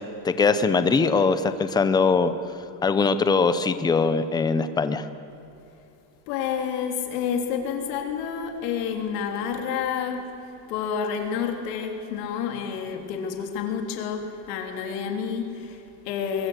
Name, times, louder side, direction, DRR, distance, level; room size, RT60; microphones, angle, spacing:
voice 1, 0.2-2.3 2.8-5.1, left 4 dB, 10° left, 12 dB, 0.5 m, -21 dB
voice 2, 6.3-10.2 10.7-16.5, left 7 dB, 75° left, 4 dB, 3.5 m, -29 dB
23.5 x 22.5 x 8.1 m, 2.9 s
cardioid pair, 170°, 49 cm